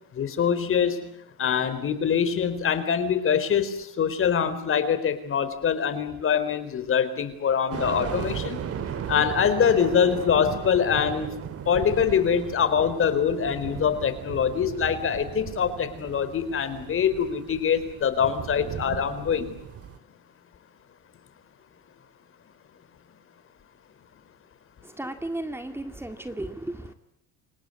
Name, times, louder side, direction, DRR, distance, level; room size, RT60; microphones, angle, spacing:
voice 1, 0.1-1.1 1.4-8.6 9.1-11.4 11.7-19.5, left 7 dB, 40° left, 12 dB, 4.0 m, -24 dB
sound 1, 7.7-20.0, right 8 dB, 50° right, 2.7 m, -36 dB
voice 2, 25.0-26.9, right 1 dB, 10° right, 7 dB, 1.9 m, -34 dB
29.0 x 18.0 x 9.6 m, 0.74 s
cardioid pair, 110°, 31 cm